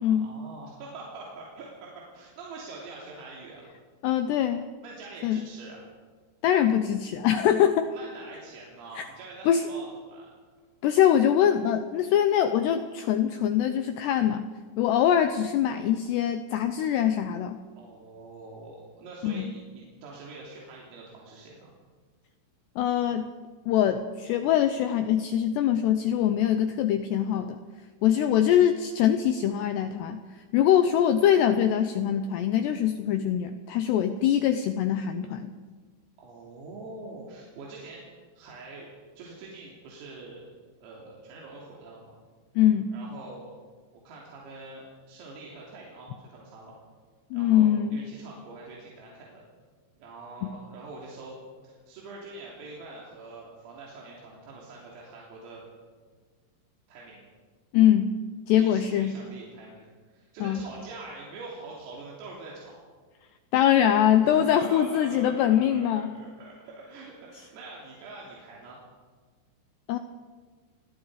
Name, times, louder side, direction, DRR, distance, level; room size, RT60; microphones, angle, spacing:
voice 1, 0.0-3.6 4.8-5.8 7.9-10.3 17.8-21.7 36.2-40.4 40.8-42.2 42.9-43.5 44.1-46.8 47.3-49.4 50.0-51.4 51.6-55.6 56.9-57.2 58.6-62.9 64.2-68.8, right 3 dB, 85° right, -4 dB, 5.8 m, -44 dB
voice 2, 4.0-4.6 5.2-5.4 6.4-7.9 9.0-9.1 9.5-9.6 10.8-14.5 14.8-17.6 19.2-19.5 22.8-23.3 23.7-27.6 28.0-30.2 30.5-35.5 42.6-42.9 47.3-48.0 50.4-50.6 57.7-58.1 58.5-59.1 60.4-60.6 63.5-66.1 69.9-70.0, left 10 dB, 85° left, 9 dB, 2.4 m, -23 dB
29.0 x 21.5 x 5.0 m, 1.5 s
omnidirectional pair, 5.9 m